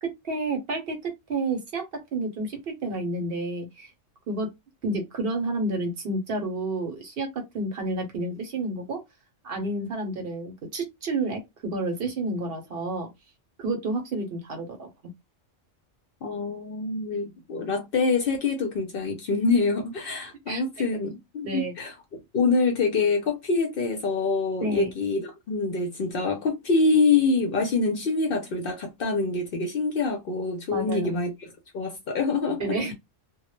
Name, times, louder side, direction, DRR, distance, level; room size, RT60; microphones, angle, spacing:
voice 1, 0.0-3.9 4.3-4.5 4.8-9.0 9.4-13.1 13.6-14.9 20.5-20.6 21.4-21.7 24.6-24.9 30.7-31.1 32.6-32.9, right 2 dB, 60° right, 0.8 m, -30 dB
voice 2, 16.2-21.9 22.3-31.3 31.7-32.6, left 4 dB, 60° left, 0.6 m, -25 dB
2.2 x 2.0 x 3.0 m
omnidirectional pair, 1.3 m